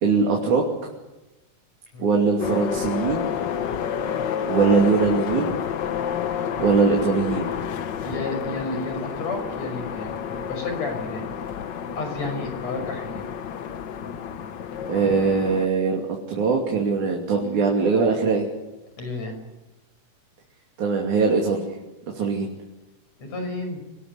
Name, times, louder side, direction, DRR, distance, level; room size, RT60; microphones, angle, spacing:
voice 1, 0.0-0.6 2.0-3.3 4.5-5.6 6.6-7.5 14.9-18.5 20.8-21.7 22.1-22.5, right 4 dB, 70° right, 0 dB, 4.3 m, -21 dB
sound 1, 2.4-15.7, left 8 dB, 75° left, 1.0 m, -30 dB
voice 2, 8.0-11.2 12.0-13.3 19.0-19.3 23.2-23.8, left 2 dB, 60° left, 5 dB, 7.0 m, -31 dB
25.0 x 19.5 x 9.8 m, 1.0 s
omnidirectional pair, 3.6 m